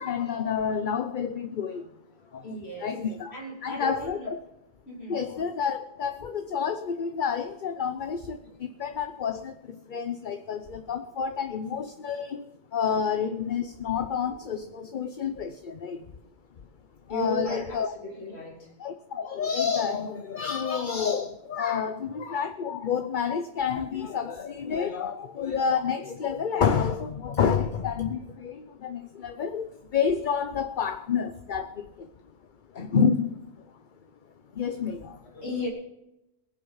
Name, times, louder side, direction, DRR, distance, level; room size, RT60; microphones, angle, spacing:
voice 1, 0.0-1.8 2.3-3.3 3.6-4.4 5.1-16.1 17.1-17.9 18.8-32.1 32.7-33.4 34.5-35.2, left 6 dB, 50° left, 0.9 m, -29 dB
voice 2, 2.2-3.0 3.3-4.3 4.9-5.2 8.4-8.5 17.1-18.7 35.3-35.7, left 1 dB, 70° left, 3.4 m, -35 dB
22.0 x 7.9 x 5.6 m
omnidirectional pair, 1.1 m